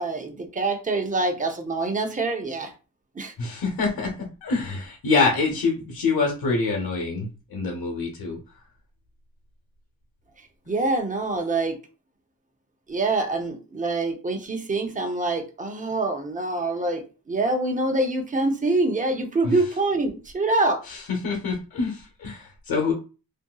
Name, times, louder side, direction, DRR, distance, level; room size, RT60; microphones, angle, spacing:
voice 1, 0.0-2.7 3.2-3.3 10.7-11.8 12.9-20.8, right 2 dB, 20° right, 4 dB, 0.7 m, -25 dB
voice 2, 3.4-8.4 19.4-19.6 20.8-22.9, left 4 dB, 70° left, 0 dB, 1.1 m, -26 dB
3.5 x 2.6 x 2.3 m, 0.32 s
cardioid pair, 90°, 37 cm